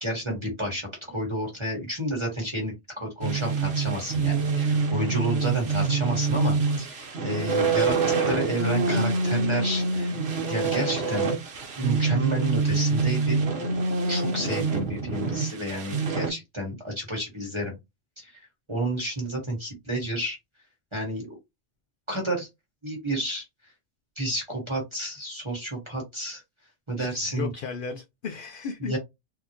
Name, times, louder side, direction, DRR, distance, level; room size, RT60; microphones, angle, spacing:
voice 1, 0.0-10.2 10.5-11.3 11.8-13.4 14.1-17.8 18.2-18.4 18.7-20.4 20.9-21.4 22.1-22.5 22.8-23.4 24.2-26.4 26.9-27.5 28.8-29.0, right 1 dB, 25° right, 1.3 m, -30 dB
sound 1, 3.2-16.3, right 4 dB, 60° right, 1.2 m, -26 dB
voice 2, 26.9-28.9, left 5 dB, 55° left, 0.7 m, -35 dB
3.8 x 2.8 x 2.9 m
omnidirectional pair, 1.3 m